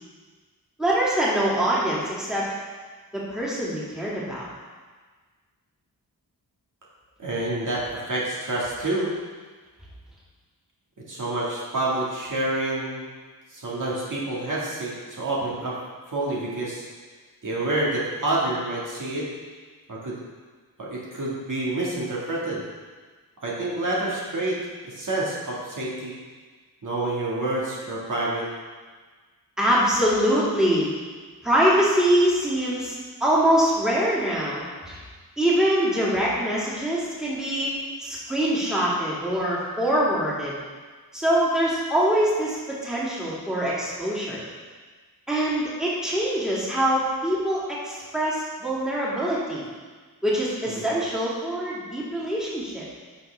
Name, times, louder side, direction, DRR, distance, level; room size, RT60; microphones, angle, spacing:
voice 1, 0.8-2.5 3.1-4.5 29.6-30.9 31.4-32.9 33.2-35.0 35.4-37.7 38.0-40.6 41.1-44.4 45.3-49.7 50.2-52.9, right 1 dB, ahead, -7 dB, 2.3 m, -24 dB
voice 2, 7.2-9.1 11.1-13.0 13.5-15.8 16.1-16.9 17.4-19.3 19.9-20.2 20.8-22.6 23.4-26.1 26.8-28.5 50.7-50.9, right 2 dB, 55° right, -6 dB, 2.0 m, -28 dB
11.0 x 5.9 x 3.4 m, 1.4 s
wide cardioid pair, 100°, 37 cm